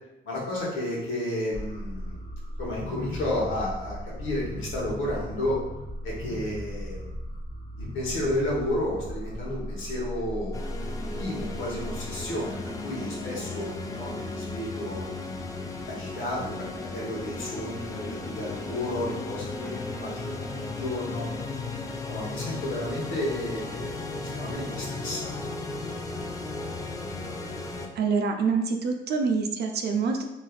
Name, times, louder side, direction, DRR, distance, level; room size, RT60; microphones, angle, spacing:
voice 1, 0.2-2.2 2.6-5.6 6.0-7.1 7.8-10.6 11.0-15.0 15.9-21.3 22.1-25.6, left 1 dB, 85° left, -4 dB, 1.1 m, -32 dB
sound 1, 1.5-12.4, equal, 45° left, 0.8 m, -37 dB
sound 2, 10.5-27.9, left 3 dB, 15° left, 0.3 m, -35 dB
voice 2, 28.0-30.2, right 5 dB, 55° right, 4 dB, 0.5 m, -26 dB
3.2 x 2.6 x 2.3 m, 0.98 s
cardioid pair, 90°, 20 cm